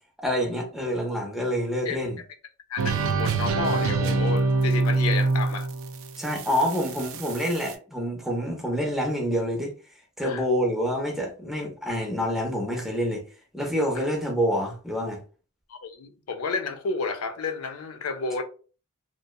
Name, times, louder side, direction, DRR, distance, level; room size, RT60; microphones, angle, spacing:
voice 1, 0.2-2.2 6.2-9.7 10.2-13.2 13.5-15.2, equal, ahead, 0.6 m, -27 dB
sound 1, 2.8-7.7, right 3 dB, 65° right, 0.3 m, -25 dB
voice 2, 3.2-5.7 10.2-10.4 14.0-14.1 15.7-18.4, left 4 dB, 75° left, 0.5 m, -31 dB
2.7 x 2.1 x 2.2 m
head